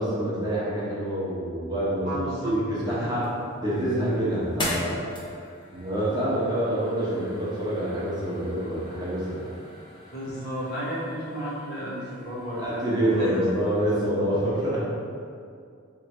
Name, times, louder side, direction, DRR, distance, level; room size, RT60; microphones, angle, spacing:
voice 1, 0.0-2.1 2.4-3.2 3.6-5.1 5.7-9.5 12.6-15.1, right 1 dB, 20° right, -8 dB, 1.0 m, -26 dB
voice 2, 2.0-2.6 2.8-3.1 10.1-13.4, equal, 50° left, -7 dB, 1.1 m, -33 dB
sound 1, 2.9-13.9, left 1 dB, 25° left, 0.7 m, -40 dB
3.5 x 3.2 x 4.2 m, 2.3 s
head